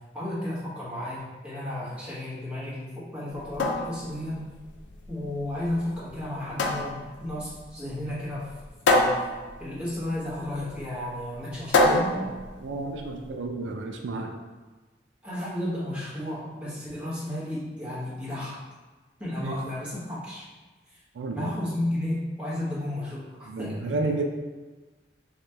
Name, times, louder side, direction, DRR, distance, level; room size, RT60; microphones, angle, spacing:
voice 1, 0.1-4.5 5.1-8.5 8.9-9.3 9.6-12.2 15.2-18.6 19.2-20.5 20.9-21.0 21.3-24.0, left 1 dB, 5° right, -10 dB, 1.1 m, -33 dB
sound 1, 3.3-13.3, left 2 dB, 85° left, 0.4 m, -28 dB
voice 2, 11.8-12.2 12.6-14.4 19.4-19.7 21.1-21.5 23.5-24.2, right 2 dB, 85° right, 3 dB, 0.4 m, -31 dB
3.0 x 2.8 x 3.3 m, 1.3 s
head